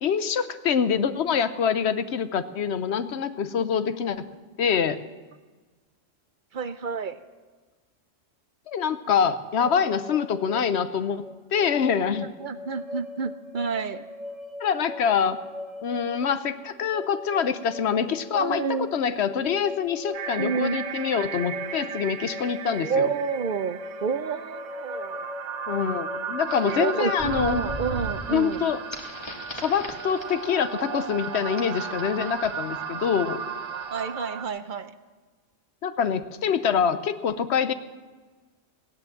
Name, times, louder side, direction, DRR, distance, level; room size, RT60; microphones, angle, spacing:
voice 1, 0.0-4.2 4.6-5.0 8.7-12.3 14.6-15.4 15.8-23.1 25.7-27.7 28.3-28.8 29.6-33.4 35.8-37.7, left 7 dB, 60° left, 12 dB, 0.9 m, -25 dB
voice 2, 6.5-7.2 11.9-14.0 18.3-18.9 20.4-20.8 22.8-25.3 26.6-28.7 33.9-34.9, right 5 dB, 55° right, 12 dB, 0.6 m, -29 dB
sound 1, 9.6-28.3, left 2 dB, ahead, 0.5 m, -40 dB
sound 2, 20.1-34.4, right 7 dB, 75° right, 1.0 m, -35 dB
sound 3, 26.5-34.0, right 1 dB, 20° left, 1.7 m, -40 dB
16.5 x 9.6 x 7.5 m, 1.3 s
omnidirectional pair, 1.3 m